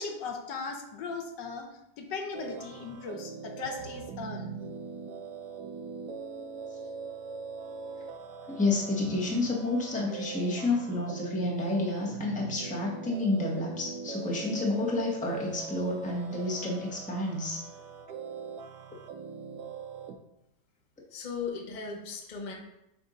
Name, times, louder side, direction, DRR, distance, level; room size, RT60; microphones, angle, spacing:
voice 1, 0.0-1.7 2.0-4.5, left 4 dB, 75° left, 3 dB, 1.4 m, -38 dB
sound 1, 2.3-20.2, right 5 dB, 70° right, 1.0 m, -42 dB
voice 2, 8.5-17.6, left 2 dB, 5° left, -3 dB, 0.9 m, -30 dB
voice 3, 21.1-22.5, left 5 dB, 35° left, -1 dB, 0.8 m, -37 dB
7.7 x 2.7 x 5.0 m, 0.84 s
omnidirectional pair, 2.0 m